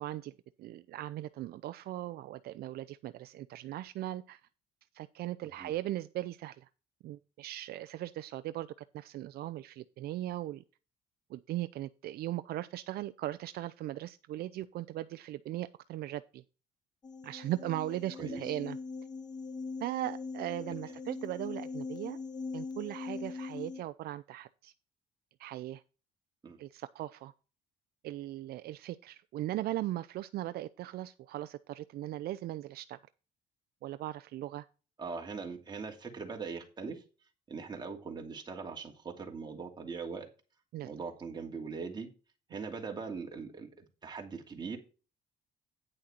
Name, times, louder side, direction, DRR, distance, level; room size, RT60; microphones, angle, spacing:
voice 1, 0.0-4.4 4.9-6.7 7.0-10.6 11.3-16.4 17.2-18.8 19.8-22.2 22.5-24.7 25.4-25.8 26.6-27.3 28.0-33.0 33.8-34.7 40.7-40.9, right 14 dB, 70° right, 12 dB, 0.6 m, -38 dB
sound 1, 17.0-23.8, left 4 dB, 25° left, 0.7 m, -41 dB
voice 2, 35.0-37.0 37.5-40.3 40.8-42.1 42.5-44.8, right 5 dB, 25° right, 1 dB, 2.7 m, -41 dB
10.0 x 6.4 x 4.4 m, 0.33 s
cardioid pair, 110°, 17 cm